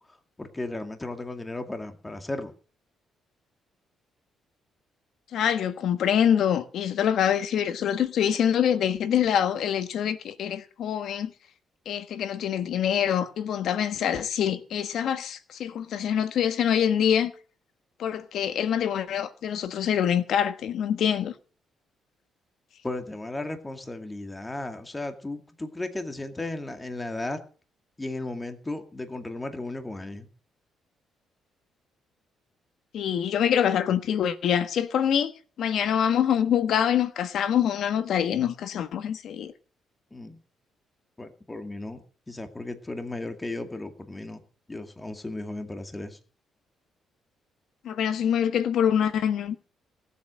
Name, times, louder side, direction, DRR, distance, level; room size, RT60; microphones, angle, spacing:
voice 1, 0.4-2.5 22.8-27.4 28.0-30.3 40.1-40.4 41.2-44.4 44.7-46.2, left 2 dB, 15° left, 2.2 m, -35 dB
voice 2, 5.3-11.3 11.8-17.3 18.0-21.3 32.9-35.3 35.6-39.5 47.8-49.6, left 9 dB, 70° left, 1.3 m, -25 dB
18.0 x 8.2 x 6.3 m
cardioid pair, 90°, 0 cm